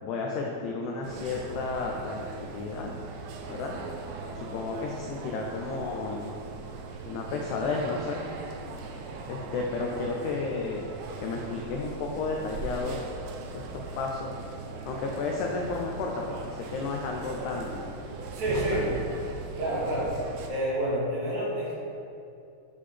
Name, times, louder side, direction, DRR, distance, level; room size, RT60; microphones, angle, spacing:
voice 1, 0.0-2.9 3.5-3.7 4.3-6.3 7.0-8.2 9.3-10.9 11.2-13.1 13.5-14.4 14.9-17.9 18.7-18.9, left 4 dB, 85° left, 0 dB, 1.7 m, -32 dB
sound 1, 1.0-20.5, right 4 dB, 80° right, 2.0 m, -39 dB
voice 2, 18.3-18.8 19.6-20.1 20.5-21.7, right 1 dB, 60° right, -7 dB, 2.9 m, -28 dB
9.7 x 5.4 x 3.3 m, 2.6 s
omnidirectional pair, 4.2 m